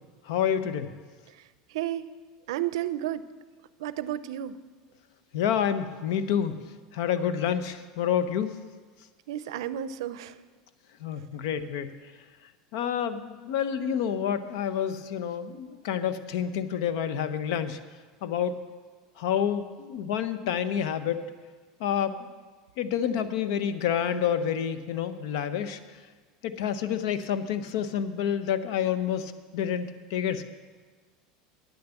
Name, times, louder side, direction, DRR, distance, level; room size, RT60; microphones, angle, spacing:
voice 1, 0.3-0.9 5.3-6.6 6.9-8.5 11.0-11.9 12.7-17.8 18.2-18.6 19.2-21.2 21.8-22.3 22.8-25.8 26.4-30.4, left 8 dB, 70° left, 12 dB, 0.7 m, -28 dB
voice 2, 1.7-2.1 2.5-3.2 3.8-4.6 9.3-10.4, right 12 dB, 90° right, 15 dB, 0.5 m, -32 dB
9.3 x 6.9 x 8.1 m, 1.4 s
supercardioid pair, 150°, 3 cm